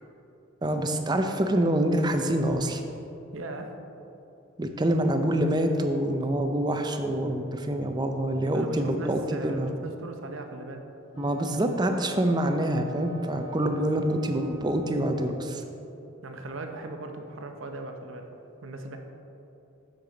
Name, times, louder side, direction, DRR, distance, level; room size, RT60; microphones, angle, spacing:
voice 1, 0.6-2.8 4.6-9.7 11.2-15.6, right 1 dB, 20° right, 6 dB, 0.5 m, -26 dB
voice 2, 3.3-3.7 8.5-10.8 16.2-18.3 18.6-19.0, right 2 dB, 70° right, 5 dB, 0.7 m, -38 dB
Wind instrument woodwind instrument, 11.1-15.4, right 4 dB, 75° left, 0.7 m, -47 dB
7.4 x 6.7 x 3.9 m, 2.9 s
head